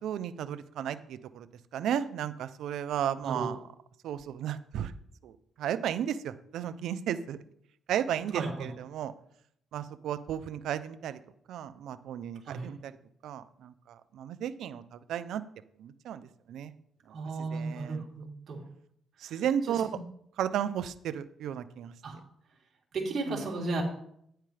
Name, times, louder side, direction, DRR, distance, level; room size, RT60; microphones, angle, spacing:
voice 1, 0.0-1.5 1.7-3.6 4.0-4.9 5.2-5.3 5.6-7.4 7.9-9.1 9.7-11.2 11.5-12.9 13.2-15.4 15.8-16.2 16.5-16.7 17.4-18.0 19.2-19.9 20.4-21.9 23.3-23.5, right 9 dB, 75° right, 13 dB, 0.6 m, -34 dB
voice 2, 8.3-8.7 12.5-12.7 17.1-18.6 19.2-19.9 22.0-22.2 22.9-23.8, right 3 dB, 55° right, -2 dB, 3.4 m, -35 dB
10.5 x 9.0 x 3.4 m, 0.71 s
cardioid pair, 90°, 0 cm